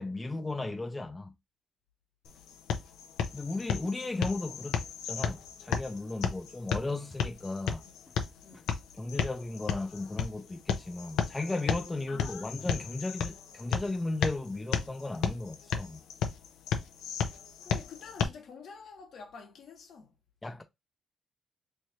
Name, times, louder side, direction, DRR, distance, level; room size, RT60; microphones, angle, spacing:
voice 1, 0.0-1.3 3.3-7.8 9.0-16.0 20.4-20.6, left 2 dB, 20° left, 0.6 m, -35 dB
sound 1, 2.2-18.2, left 7 dB, 85° left, 0.6 m, -34 dB
voice 2, 8.4-8.7 12.1-12.6 17.6-20.1, left 5 dB, 70° left, 1.3 m, -48 dB
3.2 x 2.5 x 4.3 m
cardioid pair, 90°, 0 cm